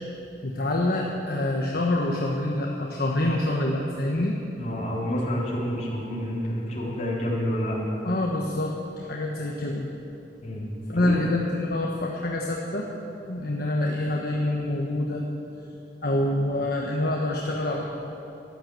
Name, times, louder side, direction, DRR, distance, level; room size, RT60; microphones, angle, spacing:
voice 1, 0.4-4.4 8.0-9.9 10.9-12.9 13.3-15.2 16.0-17.9, left 1 dB, 60° left, -1 dB, 1.2 m, -26 dB
voice 2, 4.6-7.8 10.4-10.7 10.9-11.2, equal, 40° left, -4 dB, 3.6 m, -29 dB
13.5 x 12.0 x 7.7 m, 2.9 s
head